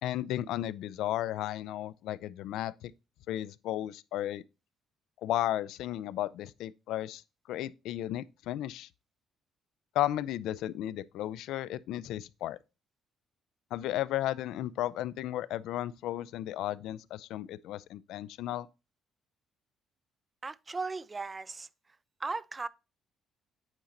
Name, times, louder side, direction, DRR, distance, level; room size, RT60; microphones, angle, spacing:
voice 1, 0.0-2.9 3.3-4.4 5.2-7.2 7.5-8.9 9.9-12.6 13.7-18.7, left 13 dB, 80° left, 0.4 m, -34 dB
voice 2, 20.4-21.7 22.2-22.7, right 3 dB, 20° right, 0.3 m, -36 dB
8.9 x 3.8 x 4.1 m
cardioid pair, 155°, 0 cm